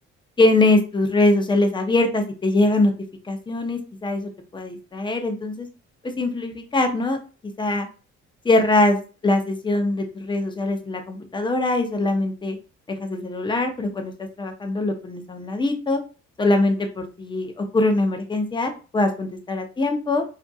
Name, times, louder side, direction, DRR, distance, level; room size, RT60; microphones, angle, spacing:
voice 1, 0.4-2.9 3.2-5.7 6.0-7.2 7.4-7.9 8.4-12.6 13.0-16.0 16.4-20.2, left 2 dB, 15° left, 5 dB, 0.5 m, -22 dB
2.6 x 2.4 x 2.3 m, 0.34 s
cardioid pair, 90°, 30 cm